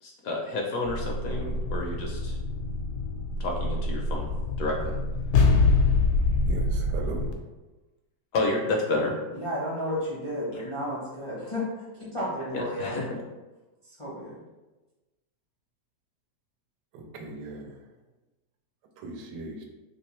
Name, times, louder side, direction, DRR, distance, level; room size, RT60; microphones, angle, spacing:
voice 1, 0.0-2.4 3.4-4.3 4.6-4.9 8.3-9.2 12.5-13.2, left 2 dB, 70° left, 0 dB, 0.9 m, -30 dB
sound 1, 0.9-7.3, left 3 dB, 85° left, 1.2 m, -25 dB
voice 2, 6.4-7.2 16.9-17.7 19.0-19.7, right 3 dB, 90° right, 2 dB, 1.2 m, -38 dB
voice 3, 9.3-13.0 14.0-14.3, equal, 35° left, -8 dB, 0.5 m, -32 dB
3.1 x 3.0 x 3.0 m, 1.1 s
omnidirectional pair, 1.8 m